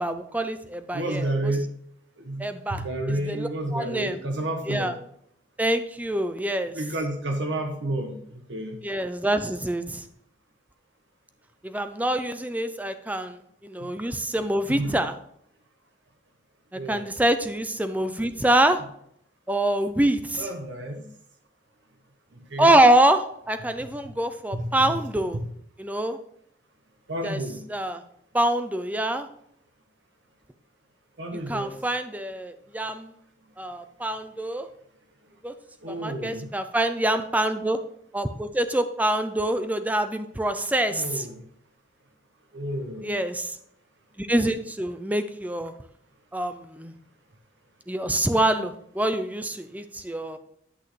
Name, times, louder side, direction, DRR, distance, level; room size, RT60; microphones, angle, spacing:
voice 1, 0.0-1.5 2.4-4.2 4.7-4.9 5.6-6.8 8.8-10.0 11.6-15.1 16.7-18.8 19.5-20.5 22.6-25.4 25.8-26.2 27.2-27.4 27.7-28.0 28.3-29.3 31.5-33.1 33.6-34.7 35.4-35.5 35.9-37.8 38.1-41.3 43.0-43.6 44.2-45.7 46.3-46.9 47.9-50.4, right 1 dB, 10° right, 9 dB, 0.6 m, -25 dB
voice 2, 0.9-1.7 2.2-2.5 2.8-4.9 6.7-8.8 13.8-13.9 14.7-15.0 16.7-17.0 20.4-21.0 22.3-22.7 24.5-24.9 25.3-25.5 27.1-27.6 31.2-31.7 35.8-36.5 40.9-41.4 42.5-43.1, right 1 dB, 90° right, 3 dB, 1.2 m, -30 dB
11.0 x 6.3 x 3.3 m, 0.69 s
head